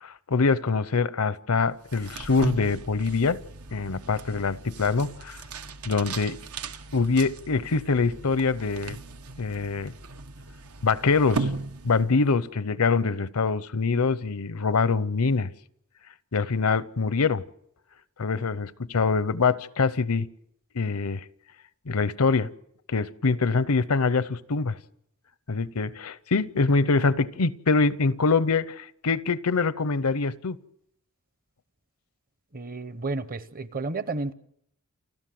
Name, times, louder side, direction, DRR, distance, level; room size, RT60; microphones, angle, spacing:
voice 1, 0.0-3.4 3.7-5.4 5.8-6.4 6.9-9.0 9.4-9.9 10.8-11.5 11.8-15.5 16.3-17.4 18.2-20.3 20.7-21.2 21.9-22.5 22.9-24.8 25.5-30.6, left 4 dB, 75° left, 0.7 m, -24 dB
sound 1, 1.8-12.4, right 3 dB, 90° right, 1.3 m, -37 dB
voice 2, 32.5-34.3, right 3 dB, 40° right, 0.9 m, -32 dB
29.5 x 12.0 x 7.7 m
head